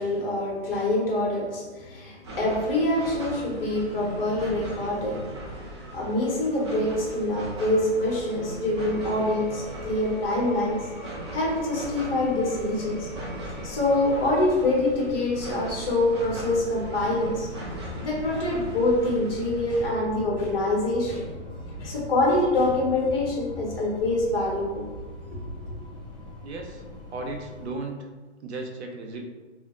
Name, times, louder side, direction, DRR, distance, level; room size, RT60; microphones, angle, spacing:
voice 1, 0.0-10.9 11.3-13.1 13.6-21.3 21.8-24.8, left 2 dB, 50° left, -3 dB, 1.2 m, -25 dB
sound 1, 2.2-19.8, right 1 dB, 25° right, 0.3 m, -39 dB
sound 2, 8.7-14.1, right 1 dB, 5° left, 1.2 m, -43 dB
sound 3, 9.3-27.7, equal, 30° left, 0.5 m, -42 dB
voice 2, 26.4-26.8 27.1-28.0 28.4-29.2, right 3 dB, 65° right, 2 dB, 0.7 m, -35 dB
2.4 x 2.1 x 3.6 m, 1.3 s
hypercardioid pair, 145°, 36 cm